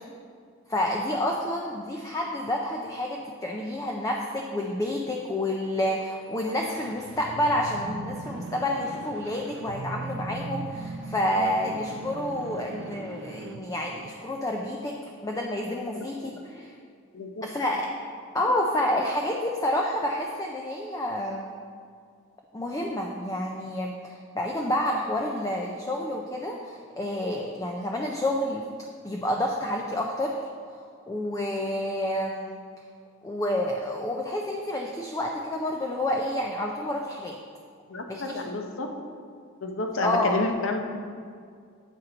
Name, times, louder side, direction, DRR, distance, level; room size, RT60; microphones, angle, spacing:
voice 1, 0.7-16.7 17.4-17.9 18.3-21.5 22.5-28.6 29.0-30.4 31.1-32.6 33.2-37.4 38.1-38.4 40.0-40.3, left 1 dB, 15° left, 0 dB, 0.4 m, -29 dB
sound 1, 6.4-14.6, right 3 dB, 60° right, 0.4 m, -39 dB
voice 2, 37.9-38.9 39.6-41.1, left 2 dB, 65° left, 3 dB, 0.7 m, -30 dB
9.1 x 4.3 x 3.9 m, 2.2 s
head